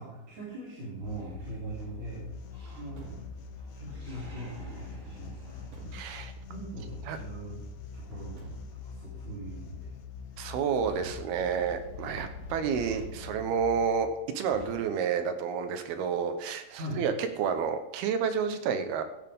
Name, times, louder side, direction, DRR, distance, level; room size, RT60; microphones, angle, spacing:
voice 1, 0.0-2.3 2.7-3.1 3.6-5.7 6.5-7.6 7.9-8.4 8.7-9.9 16.8-17.0, right 2 dB, 45° right, -9 dB, 4.8 m, -41 dB
sound 1, 1.0-13.9, left 5 dB, 85° left, 3.0 m, -44 dB
Animal, 1.1-2.0 2.5-3.3 3.5-6.5, right 2 dB, 25° right, 4.0 m, -51 dB
Truck, 2.7-3.6 5.5-6.3 8.0-8.9 10.5-11.6 12.8-13.6 14.5-15.4, right 4 dB, 60° right, 3.9 m, -49 dB
voice 2, 5.9-6.3 7.1-7.2 10.4-14.1 14.4-19.0, right 7 dB, 85° right, 8 dB, 3.0 m, -30 dB
15.5 x 13.0 x 3.7 m, 0.99 s
omnidirectional pair, 4.3 m